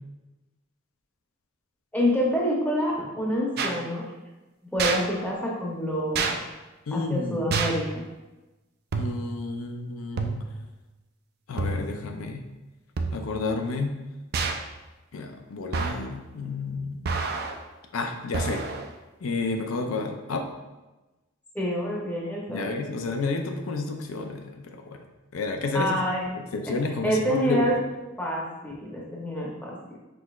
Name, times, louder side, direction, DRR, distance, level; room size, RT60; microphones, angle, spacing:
voice 1, 1.9-4.1 4.7-6.2 6.9-8.0 21.5-22.8 25.7-26.2 27.0-27.7 28.2-29.7, equal, 10° left, -4 dB, 0.7 m, -27 dB
sound 1, 3.6-3.8 4.8-5.0 6.1-6.3 7.5-7.9 8.9-9.3 10.2-10.6 11.6-12.0 13.0-13.4 14.3-14.7 15.7-16.1 17.1-17.6 18.3-18.9, right 4 dB, 50° right, 0.4 m, -28 dB
voice 2, 6.9-7.6 8.9-10.5 11.5-12.4 13.1-14.0 15.1-17.1 17.9-18.6 19.2-20.5 22.5-25.0 25.3-26.0 26.4-27.7, left 3 dB, 90° left, 4 dB, 0.5 m, -31 dB
6.0 x 3.0 x 2.3 m, 1.1 s
head